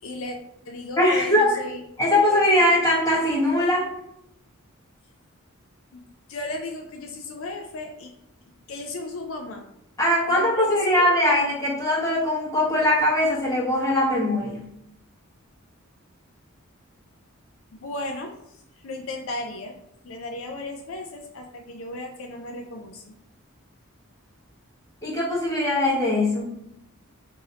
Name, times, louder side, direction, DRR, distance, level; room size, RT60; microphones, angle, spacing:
voice 1, 0.0-0.4 0.7-1.8 2.1-2.6 5.9-6.0 6.3-8.1 8.7-9.6 10.3-10.8 17.7-18.3 18.8-19.7 20.0-23.1, left 2 dB, 65° left, 3 dB, 0.4 m, -35 dB
voice 2, 1.0-1.6 2.0-3.9 10.0-14.7 25.0-26.5, left 1 dB, 15° left, -5 dB, 1.1 m, -21 dB
4.8 x 2.6 x 2.8 m, 0.78 s
head